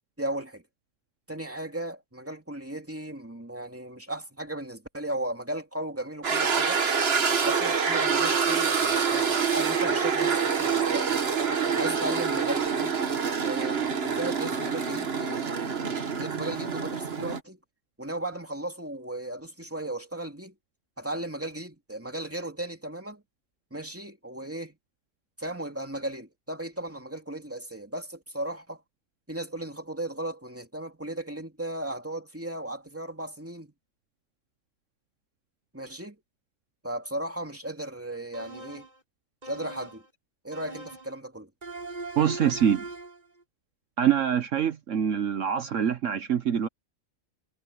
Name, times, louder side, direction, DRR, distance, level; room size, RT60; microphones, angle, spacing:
voice 1, 0.2-0.6 1.3-6.8 7.4-11.1 11.7-13.0 13.4-17.6 18.0-20.5 21.0-23.2 23.7-24.8 25.4-28.8 29.3-33.7 35.7-36.2 36.8-38.9 39.4-40.0 40.4-41.5, right 1 dB, 10° right, 2.8 m, -36 dB
sound 1, 6.2-17.4, right 6 dB, 50° right, 1.5 m, -26 dB
sound 2, 38.3-39.0 39.4-40.1 40.5-41.2 41.6-43.2, right 3 dB, 30° right, 6.1 m, -40 dB
voice 2, 42.2-42.8 44.0-46.7, right 8 dB, 65° right, 1.2 m, -25 dB
omnidirectional pair, 1.4 m